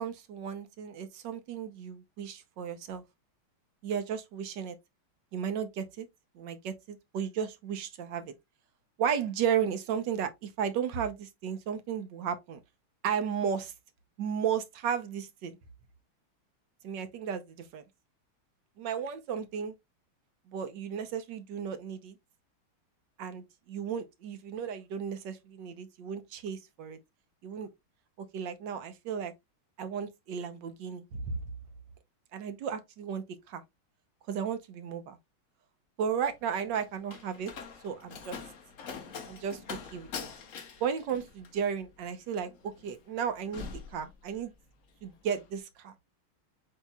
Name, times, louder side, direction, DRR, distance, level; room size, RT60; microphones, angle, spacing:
voice 1, 0.0-3.0 3.8-4.7 5.3-6.1 6.4-8.3 9.0-12.6 13.0-13.7 14.2-15.5 16.8-17.8 18.8-19.7 20.5-22.2 23.2-27.0 27.4-27.7 28.3-29.3 29.8-31.4 32.3-33.6 34.3-35.2 36.0-37.5 37.8-38.4 39.3-40.1 40.8-44.5 45.0-45.9, right 7 dB, 70° right, 1.2 m, -34 dB
Slam, 36.2-44.7 45.0-45.5, left 5 dB, 60° left, 0.8 m, -44 dB
8.2 x 2.9 x 2.2 m
omnidirectional pair, 2.4 m